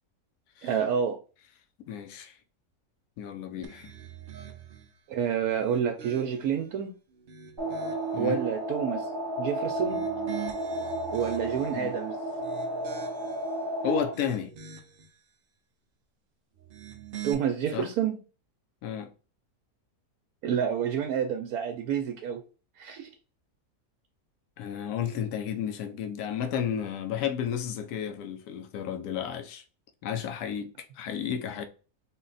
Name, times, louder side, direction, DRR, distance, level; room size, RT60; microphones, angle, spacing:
voice 1, 0.6-1.2 5.1-6.9 8.2-9.1 9.4-10.0 11.1-12.2 17.2-18.2 20.4-22.4 22.8-23.1, right 8 dB, 75° right, 1.0 m, -29 dB
voice 2, 1.9-2.3 3.2-3.9 8.1-8.4 11.7-11.9 13.8-14.5 17.7-17.9 18.8-19.1 24.6-29.6 30.0-31.6, left 8 dB, 80° left, 1.1 m, -32 dB
sound 1, 3.6-4.9 5.5-6.6 7.1-8.2 9.7-11.8 12.3-13.5 14.0-15.1 16.6-17.3, right 9 dB, 55° right, 0.6 m, -44 dB
sound 2, 7.6-14.1, right 1 dB, 20° right, 0.8 m, -32 dB
4.0 x 2.2 x 3.9 m
omnidirectional pair, 1.6 m